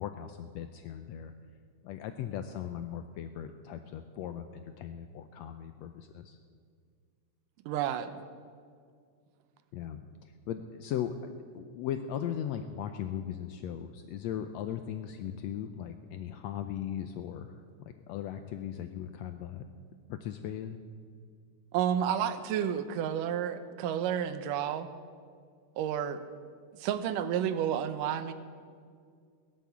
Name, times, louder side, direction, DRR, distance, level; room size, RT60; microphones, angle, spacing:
voice 1, 0.0-1.3 1.8-6.4 9.7-19.7 20.1-20.8, left 9 dB, 90° left, 8 dB, 1.5 m, -38 dB
voice 2, 7.7-8.1 21.7-24.9 25.8-26.2 26.8-28.3, right 9 dB, 80° right, 12 dB, 2.4 m, -31 dB
17.0 x 11.0 x 7.2 m, 2.1 s
omnidirectional pair, 3.8 m